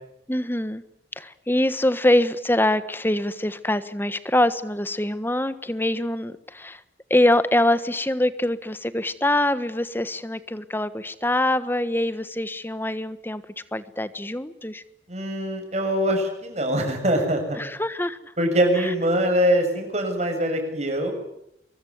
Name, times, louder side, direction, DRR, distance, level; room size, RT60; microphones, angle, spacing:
voice 1, 0.3-0.8 1.2-6.8 7.1-13.4 13.7-14.8 17.6-18.2 18.8-18.9, left 1 dB, 10° left, 13 dB, 1.4 m, -24 dB
voice 2, 15.1-17.6 18.4-21.1, equal, 40° right, 4 dB, 7.0 m, -23 dB
24.0 x 23.5 x 9.5 m, 0.82 s
head